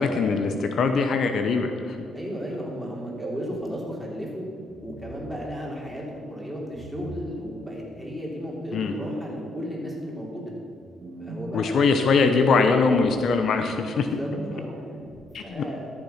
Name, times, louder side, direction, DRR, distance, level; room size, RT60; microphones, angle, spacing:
voice 1, 0.0-2.0 8.7-8.9 11.5-14.1 15.3-15.6, left 4 dB, 65° left, 7 dB, 0.7 m, -22 dB
voice 2, 2.1-4.4 4.8-10.5 11.2-11.9 13.9-14.7 15.4-15.9, equal, ahead, -3 dB, 3.1 m, -34 dB
sound 1, 3.0-3.6 4.7-5.3 6.7-7.3 8.7-9.4 10.7-11.5 12.2-13.1 14.0-15.3, right 2 dB, 55° right, 2.0 m, -38 dB
13.0 x 7.2 x 5.7 m, 2.5 s
cardioid pair, 90°, 0 cm